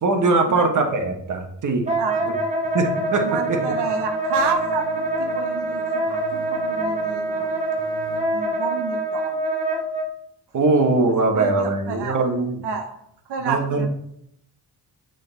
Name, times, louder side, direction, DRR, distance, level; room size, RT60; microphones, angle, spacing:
voice 1, 0.0-1.9 2.7-3.6 10.5-12.6 13.4-13.9, right 3 dB, 50° right, 4 dB, 1.1 m, -21 dB
Wind instrument woodwind instrument, 1.9-10.1, right 2 dB, 15° right, 1.2 m, -25 dB
sound 1, 2.6-8.2, right 1 dB, 30° left, 1.4 m, -42 dB
voice 2, 3.2-4.8 5.2-7.5 8.3-9.5 11.3-12.2 12.6-12.9 13.3-13.9, right 5 dB, 90° right, 3 dB, 0.8 m, -29 dB
6.5 x 3.9 x 3.9 m, 0.73 s
cardioid pair, 95°, 39 cm